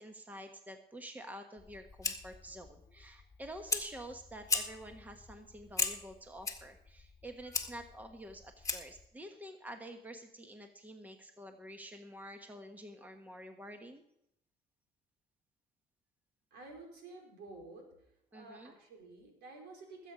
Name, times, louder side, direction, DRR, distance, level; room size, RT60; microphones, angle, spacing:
voice 1, 0.0-14.0 18.3-18.7, equal, 10° right, 5 dB, 1.3 m, -48 dB
Fire, 1.6-9.1, left 4 dB, 20° left, 1.7 m, -39 dB
voice 2, 16.5-18.0 18.3-20.1, right 3 dB, 80° right, 1 dB, 5.0 m, -51 dB
20.0 x 8.3 x 5.0 m, 0.79 s
cardioid pair, 110°, 17 cm